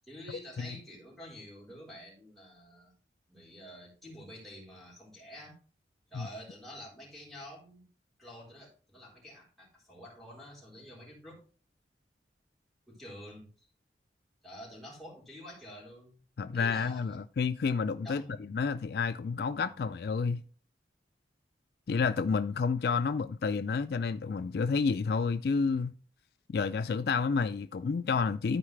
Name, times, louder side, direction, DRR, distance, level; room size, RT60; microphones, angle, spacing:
voice 1, 0.0-2.9 3.3-5.6 6.1-7.9 8.2-11.4 12.9-13.7 14.4-16.2 16.5-17.2 18.0-18.4 19.6-19.8, equal, ahead, 3.8 m, -48 dB
voice 2, 16.4-20.4 21.9-25.9 26.5-28.6, left 5 dB, 60° left, 0.3 m, -30 dB
13.5 x 4.7 x 3.2 m
head